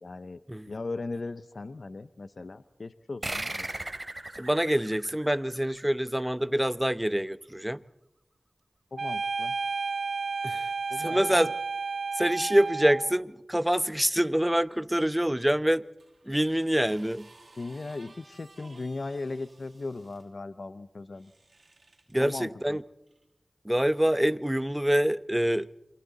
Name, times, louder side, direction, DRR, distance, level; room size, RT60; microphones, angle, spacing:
voice 1, 0.0-0.4 0.7-3.7 8.9-9.5 10.9-11.5 17.6-21.3 22.2-22.8, left 3 dB, 65° left, 0.7 m, -38 dB
sound 1, 3.2-6.3, right 2 dB, 30° right, 3.5 m, -37 dB
voice 2, 4.4-7.8 10.4-10.7 11.0-11.5 12.2-15.8 16.3-17.3 22.1-22.8 23.6-25.7, equal, 10° right, 0.8 m, -26 dB
sound 2, 9.0-13.2, right 4 dB, 75° right, 0.9 m, -32 dB
sound 3, 16.0-20.3 21.1-22.2 23.1-23.2, right 2 dB, 60° right, 4.9 m, -56 dB
28.0 x 24.5 x 4.1 m
wide cardioid pair, 45°, 0 cm